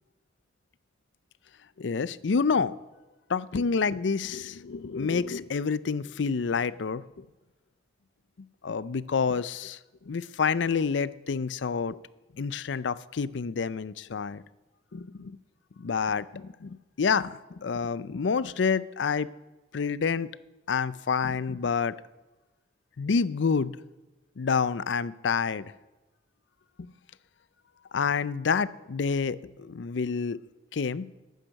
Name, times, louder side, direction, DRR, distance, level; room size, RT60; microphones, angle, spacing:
voice 1, 1.8-2.7 3.3-7.2 8.6-9.8 10.1-12.0 12.4-14.4 14.9-15.4 15.8-19.3 19.7-20.3 20.7-22.0 23.0-23.7 24.4-25.7 26.8-26.9 27.9-30.4 30.7-31.1, left 5 dB, 80° left, 0.5 m, -28 dB
14.5 x 9.2 x 6.4 m
head